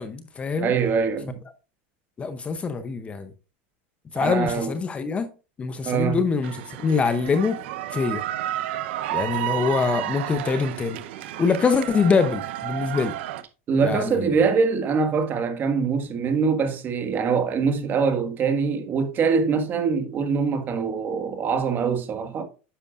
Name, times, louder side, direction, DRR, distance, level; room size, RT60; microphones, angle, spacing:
voice 1, 0.0-0.7 2.2-3.3 4.1-5.3 5.6-7.6 7.9-8.2 9.1-11.0 11.4-13.2 13.8-14.4, left 5 dB, 20° left, 0.7 m, -24 dB
voice 2, 0.6-1.4 4.2-4.7 5.8-6.2 13.7-22.4, right 5 dB, 30° right, 1.6 m, -23 dB
sound 1, 6.4-13.4, right 14 dB, 75° right, 0.8 m, -31 dB
10.0 x 6.7 x 2.5 m
supercardioid pair, 135°, 6 cm